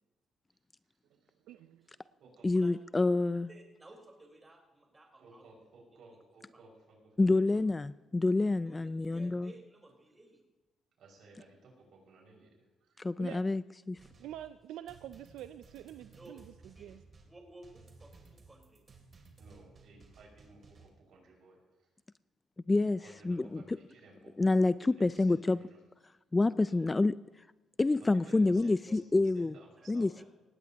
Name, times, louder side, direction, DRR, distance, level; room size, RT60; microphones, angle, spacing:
voice 1, 1.4-1.9 13.2-13.4 14.2-17.0, right 12 dB, 85° right, 10 dB, 0.4 m, -46 dB
voice 2, 2.4-3.5 7.2-9.5 13.0-13.6 13.9-14.0 22.7-23.8 24.4-25.6 26.3-27.2 27.8-29.5 29.9-30.2, left 2 dB, 20° left, 16 dB, 0.3 m, -28 dB
voice 3, 3.3-5.4 6.5-6.6 8.6-10.4 16.1-18.8 28.6-29.0 30.1-30.2, right 1 dB, 20° right, 0 dB, 4.4 m, -56 dB
voice 4, 5.2-7.6 11.0-13.1 19.4-21.9 23.0-24.6 24.9-25.8 26.7-27.0 28.0-30.1, right 3 dB, 70° right, -1 dB, 5.8 m, -58 dB
sound 1, 14.0-20.9, right 4 dB, 40° right, 2.9 m, -58 dB
18.5 x 16.0 x 3.0 m, 1.2 s
cardioid pair, 90°, 0 cm